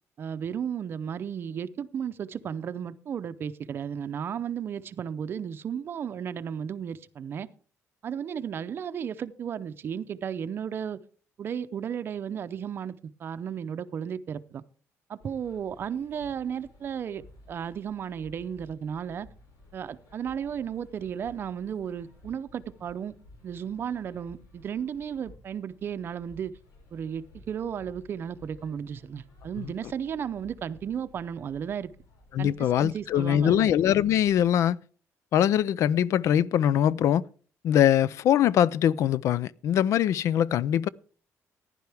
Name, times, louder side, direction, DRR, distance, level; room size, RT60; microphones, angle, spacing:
voice 1, 0.2-7.5 8.0-11.0 11.4-14.6 15.1-19.3 19.7-23.1 23.4-26.5 26.9-31.9 32.4-33.7, right 8 dB, 40° right, 0.6 m, -34 dB
sound 1, 15.2-34.5, left 1 dB, 80° left, 5.6 m, -55 dB
voice 2, 32.3-34.8 35.3-37.2 37.6-40.9, left 10 dB, 65° left, 0.4 m, -22 dB
15.0 x 11.0 x 3.4 m
cardioid pair, 165°, 6 cm